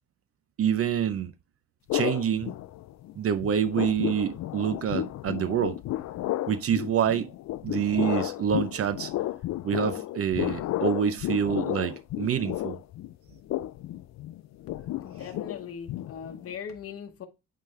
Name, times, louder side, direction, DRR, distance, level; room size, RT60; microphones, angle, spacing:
voice 1, 0.6-1.3 1.9-2.6 3.2-5.8 6.5-7.3 7.6-9.1 9.6-12.7, right 8 dB, 50° right, 0.5 m, -27 dB
sound 1, 1.9-3.1 3.4-16.6, left 15 dB, 65° left, 0.4 m, -33 dB
voice 2, 15.0-17.3, left 7 dB, 50° left, 1.0 m, -40 dB
8.6 x 3.7 x 3.2 m
cardioid pair, 90°, 30 cm